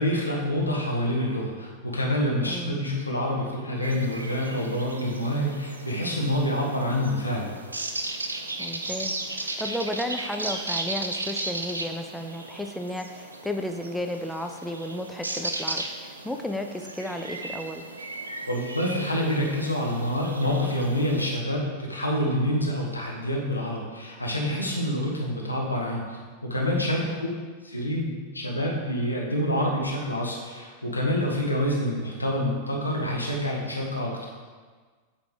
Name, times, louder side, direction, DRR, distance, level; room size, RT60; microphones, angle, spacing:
voice 1, 0.0-7.5 18.5-27.3 27.6-34.2, equal, 85° left, -2 dB, 1.2 m, -27 dB
voice 2, 2.5-2.8 8.6-17.8 27.0-27.4, left 1 dB, 5° left, 4 dB, 0.4 m, -33 dB
sound 1, 3.8-21.3, right 2 dB, 80° right, 0.5 m, -36 dB
8.4 x 3.5 x 4.7 m, 1.5 s
figure-of-eight pair, 90°, 0 cm